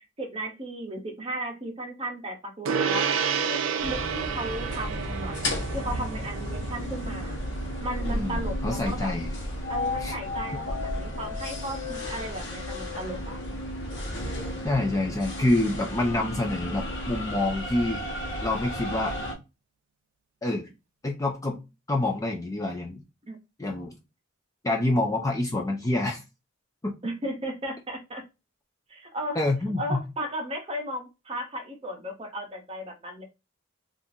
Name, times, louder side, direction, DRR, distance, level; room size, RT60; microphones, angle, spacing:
voice 1, 0.0-3.1 3.5-5.3 5.7-7.4 7.8-9.1 9.7-13.4 23.3-23.4 27.0-28.2 28.9-29.4 29.8-33.2, right 1 dB, 30° right, 0.8 m, -35 dB
Gong, 2.7-12.4, right 6 dB, 75° right, 0.4 m, -33 dB
sound 1, 3.8-19.3, left 1 dB, 60° left, 1.0 m, -33 dB
voice 2, 8.1-9.3 10.0-10.2 14.6-18.0 18.4-19.2 20.4-20.7 21.0-21.6 21.9-23.0 23.6-23.9 24.6-26.2 26.8-26.9 29.4-30.0, left 2 dB, 15° left, 0.4 m, -27 dB
3.7 x 2.5 x 2.7 m
head